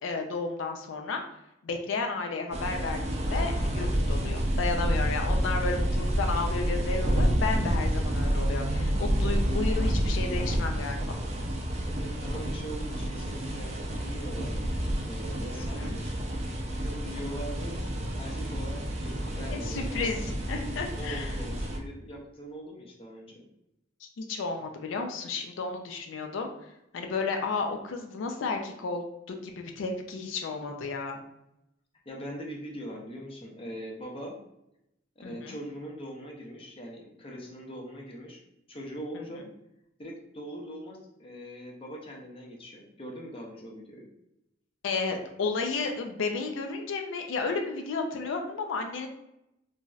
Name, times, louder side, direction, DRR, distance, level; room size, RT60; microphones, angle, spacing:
voice 1, 0.0-1.2 1.6-11.2 15.5-15.9 19.5-21.3 24.0-26.5 26.9-31.2 35.2-35.6 39.1-39.3 44.8-49.1, left 4 dB, 90° left, 4 dB, 0.4 m, -32 dB
sound 1, 2.5-21.8, equal, 35° right, 0.4 m, -29 dB
voice 2, 11.9-14.5 15.0-17.8 18.2-20.1 20.9-23.4 32.1-34.4 35.2-38.4 38.7-39.5 40.0-44.1, equal, 30° left, -1 dB, 0.6 m, -41 dB
3.1 x 2.6 x 2.3 m, 0.85 s
head